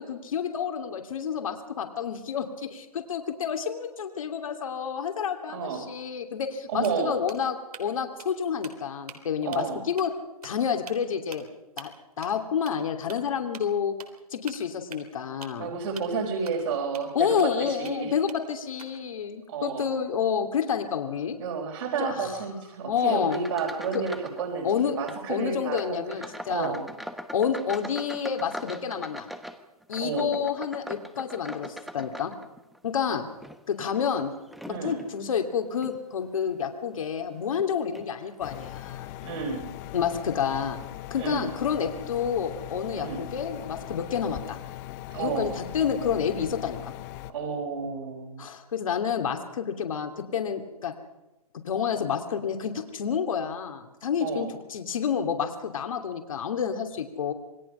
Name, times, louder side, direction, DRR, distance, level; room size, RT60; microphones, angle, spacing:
voice 1, 0.0-10.1 10.4-11.5 11.8-11.9 12.2-13.9 14.3-15.7 17.1-21.4 22.0-22.3 22.8-23.4 23.9-24.0 24.6-25.0 25.3-26.8 27.3-29.3 29.9-32.3 32.8-33.3 33.7-34.3 34.7-39.1 39.9-40.8 41.1-44.6 45.2-46.9 48.4-50.9 51.6-57.3, left 7 dB, 60° left, 5 dB, 2.8 m, -29 dB
voice 2, 5.5-5.8 6.7-7.1 9.4-9.8 15.6-18.1 19.5-19.9 21.4-26.9 30.0-30.4 34.7-35.0 39.2-39.6 41.2-41.5 43.0-43.2 45.1-45.5 47.3-48.5 54.2-54.5, right 5 dB, 55° right, -2 dB, 4.7 m, -31 dB
sound 1, 6.4-6.6 6.8-7.9 8.2-8.3 8.6-9.2 9.5-9.7 10.0-10.1 10.4-10.5 10.9-11.0 11.3-11.4 11.8-11.9 12.2-12.4 12.7-12.8 13.1-13.2 13.5-13.6 14.0-14.2 14.5-15.6 16.0-16.1 16.5-16.6 16.9-17.0 17.4-17.9 18.3-19.1, right 5 dB, 75° right, 3.7 m, -44 dB
sound 2, 23.2-24.4 24.7-25.2 25.7-32.8 33.3-35.1 35.7-36.0 36.5-36.7 37.5-37.7 38.0-38.1, equal, ahead, 1.0 m, -42 dB
sound 3, 38.4-47.3, left 14 dB, 30° left, 1.0 m, -40 dB
27.5 x 20.5 x 5.7 m, 0.97 s
hypercardioid pair, 135°, 19 cm